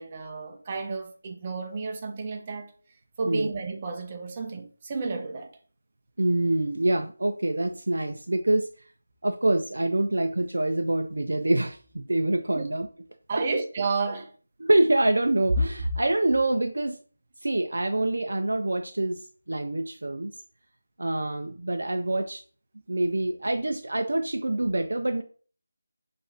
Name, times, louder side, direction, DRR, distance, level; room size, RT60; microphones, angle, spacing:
voice 1, 0.0-2.7 3.2-5.5 12.5-12.7 13.3-14.3, right 4 dB, 25° right, 0.7 m, -31 dB
voice 2, 6.2-8.7 9.2-12.9 13.3-13.4 14.6-17.0 17.4-20.3 21.0-22.4 22.9-25.2, right 1 dB, 65° right, 0.5 m, -25 dB
5.3 x 3.1 x 2.8 m
figure-of-eight pair, 160°, 0 cm